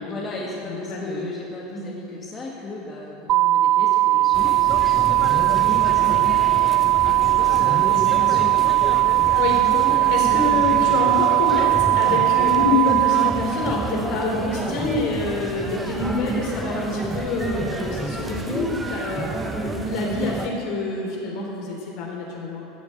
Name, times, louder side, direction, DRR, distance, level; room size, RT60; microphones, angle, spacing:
voice 1, 0.0-5.3 5.6-6.7 7.1-8.6, left 2 dB, 25° left, -4 dB, 1.8 m, -36 dB
voice 2, 0.6-1.3 1.7-1.8 6.0-6.1 7.9-8.0 9.4-9.6 10.1-22.6, left 3 dB, 60° left, -1 dB, 3.6 m, -27 dB
sound 1, 3.3-13.3, right 16 dB, 50° right, 0.4 m, -19 dB
sound 2, 4.3-20.5, right 2 dB, 10° right, 1.1 m, -30 dB
14.5 x 7.2 x 8.0 m, 2.9 s
supercardioid pair, 120°, 0 cm